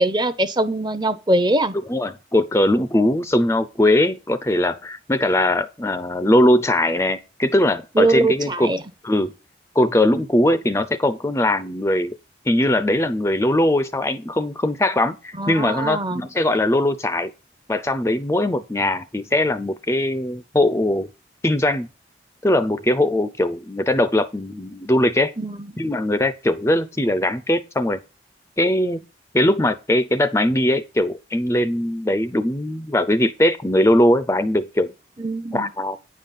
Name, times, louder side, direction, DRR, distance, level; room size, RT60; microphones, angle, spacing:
voice 1, 0.0-1.7 7.9-8.8 15.4-16.2 25.4-25.7 35.2-35.7, right 2 dB, 25° right, 0.7 m, -22 dB
voice 2, 1.9-8.7 9.0-9.3 9.7-12.2 12.5-17.3 17.7-21.1 21.4-21.9 22.4-25.3 25.8-28.0 28.6-29.0 29.3-34.9 35.5-36.0, left 1 dB, 15° left, 0.5 m, -20 dB
9.7 x 5.6 x 5.4 m
head